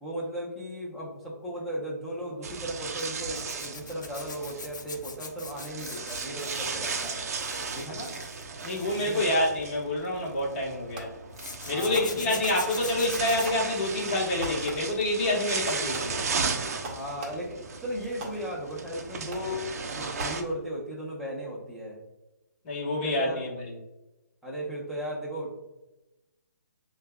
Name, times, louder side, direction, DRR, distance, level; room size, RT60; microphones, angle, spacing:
voice 1, 0.0-7.2 7.7-8.1 9.0-9.2 11.7-12.4 16.9-22.0 23.0-23.4 24.4-25.7, equal, ahead, -7 dB, 0.8 m, -36 dB
sound 1, 2.4-20.4, right 4 dB, 55° right, 0.6 m, -36 dB
Zipper (clothing), 3.0-10.4 11.3-15.0 15.4-15.7 18.0-18.2 18.5-18.6, left 4 dB, 80° left, 0.7 m, -43 dB
voice 2, 8.6-11.1 11.6-16.2 22.6-23.7, left 1 dB, 30° left, -3 dB, 1.4 m, -27 dB
Fireworks, 11.0-11.4 11.9-12.9 13.3-14.1 14.4-15.1 15.7-17.7 18.2-18.8 19.3-19.7 20.2-20.9, right 1 dB, 25° right, 0.9 m, -42 dB
7.1 x 2.4 x 2.3 m, 0.99 s
hypercardioid pair, 155°, 10 cm